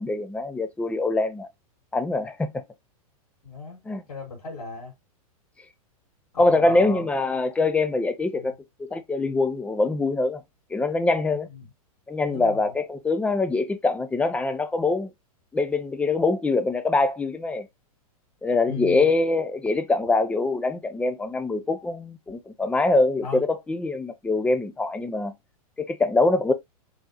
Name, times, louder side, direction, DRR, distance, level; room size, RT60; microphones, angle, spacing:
voice 1, 0.0-1.5 1.9-2.5 3.9-4.0 6.4-8.5 8.8-10.4 10.7-11.5 12.1-15.1 15.5-17.7 18.4-25.3 25.8-26.5, left 3 dB, 5° left, 0.5 m, -24 dB
voice 2, 3.4-3.8 4.1-4.9 6.3-7.0 8.4-8.5 11.5-11.6 12.2-12.6 18.7-19.1 23.2-23.4, left 4 dB, 80° left, 2.3 m, -36 dB
3.9 x 3.6 x 2.9 m
hypercardioid pair, 115°, 19 cm